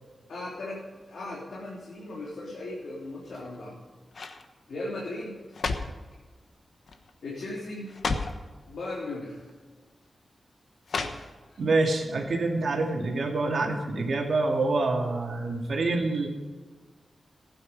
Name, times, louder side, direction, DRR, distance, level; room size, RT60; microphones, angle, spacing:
voice 1, 0.3-3.8 4.7-5.3 7.2-7.9 8.7-9.4, left 2 dB, 80° left, -5 dB, 3.2 m, -37 dB
sound 1, 3.3-3.7 4.1-4.5 5.2-6.1 6.9-7.1 7.4-7.5 7.9-8.4 9.4-9.5 10.9-11.6 12.0-12.1, left 4 dB, 60° left, 1.1 m, -33 dB
voice 2, 11.6-16.3, right 3 dB, 60° right, 1 dB, 2.3 m, -26 dB
15.5 x 9.6 x 5.3 m, 1.4 s
wide cardioid pair, 175°, 0 cm